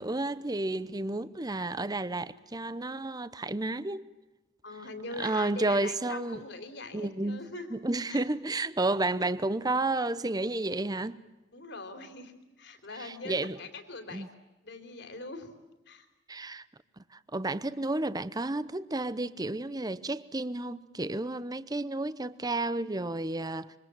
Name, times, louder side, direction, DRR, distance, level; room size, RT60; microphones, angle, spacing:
voice 1, 0.0-4.0 5.2-6.4 6.9-7.4 7.7-11.2 13.0-13.6 14.1-14.3 16.3-16.6 17.0-23.7, right 2 dB, 20° right, 0.8 m, -31 dB
voice 2, 4.6-7.7 8.1-8.2 11.5-12.3 12.6-14.3 14.6-15.5 15.9-16.1, left 2 dB, 60° left, 3.5 m, -42 dB
26.5 x 24.5 x 7.6 m
head